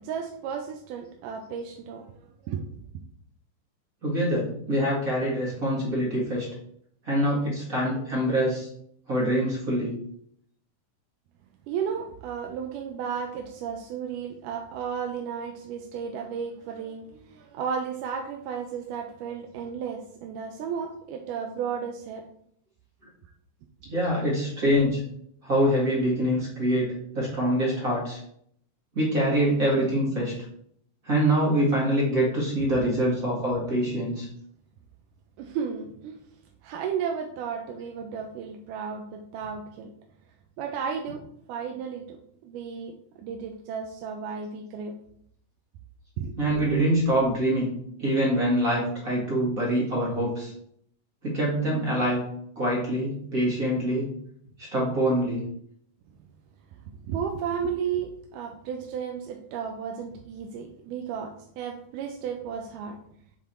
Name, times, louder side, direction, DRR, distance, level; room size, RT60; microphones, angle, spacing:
voice 1, 0.0-2.8 11.7-22.3 24.1-24.2 35.4-36.2 36.6-39.9 40.6-41.2 41.5-42.2 42.4-44.9 46.2-46.4 57.0-63.0, right 7 dB, 90° right, 2 dB, 2.2 m, -33 dB
voice 2, 4.0-6.5 7.0-8.7 9.1-9.9 23.9-25.0 25.4-28.2 28.9-30.3 31.0-34.3 46.4-47.7 48.0-50.5 51.2-52.2 52.6-54.0 54.6-55.4, equal, 35° right, -5 dB, 1.7 m, -25 dB
7.5 x 3.5 x 4.3 m, 0.68 s
omnidirectional pair, 3.7 m